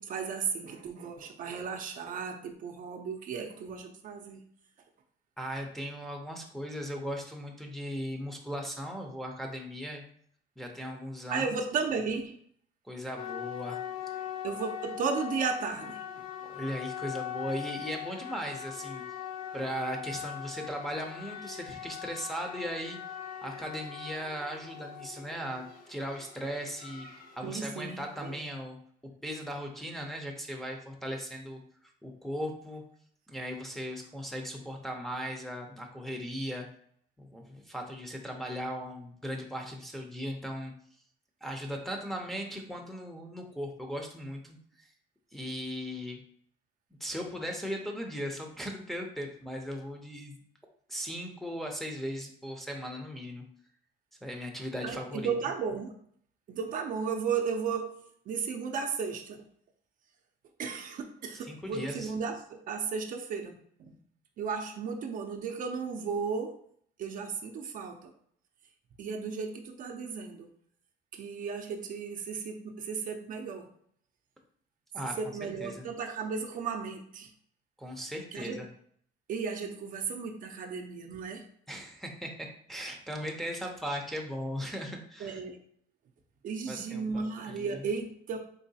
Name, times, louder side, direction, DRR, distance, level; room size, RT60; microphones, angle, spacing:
voice 1, 0.0-4.4 11.3-12.4 14.4-16.2 27.4-28.4 54.8-55.9 56.5-57.9 58.3-59.4 60.6-63.5 63.8-63.9 64.4-66.6 67.0-68.1 69.0-70.5 71.1-73.7 75.0-77.3 78.3-78.6 79.3-81.4 85.2-85.6 86.4-88.4, right 5 dB, 55° right, 4 dB, 0.5 m, -34 dB
voice 2, 5.4-10.0 10.6-11.5 12.9-13.8 14.0-14.2 16.4-19.0 19.5-23.0 23.4-27.1 27.4-28.8 29.2-32.8 33.3-36.7 37.2-40.7 41.4-44.9 45.3-46.2 47.0-50.4 50.9-53.4 54.2-55.3 61.4-62.1 74.9-75.1 75.4-75.9 77.8-78.7 81.7-85.4 86.7-87.9, equal, ahead, 0 dB, 0.6 m, -38 dB
sound 1, 13.2-28.4, left 9 dB, 55° left, 0.8 m, -41 dB
3.9 x 3.0 x 2.7 m, 0.63 s
cardioid pair, 110°, 17 cm